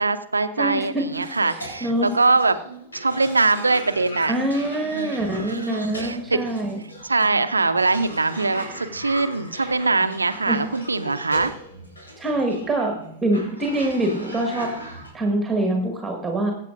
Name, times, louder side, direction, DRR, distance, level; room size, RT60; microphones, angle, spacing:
voice 1, 0.0-2.5 2.9-4.3 4.9-6.4 7.0-11.5, right 3 dB, 80° right, 11 dB, 0.6 m, -22 dB
voice 2, 0.6-1.0 1.4-2.1 4.3-6.8 10.4-10.6 12.2-12.9 13.2-14.7 15.1-16.5, right 1 dB, 10° right, 2 dB, 1.7 m, -24 dB
Cough, 1.1-15.1, equal, 80° left, 4.4 m, -38 dB
22.5 x 8.2 x 2.5 m, 0.72 s
figure-of-eight pair, 90°, 0 cm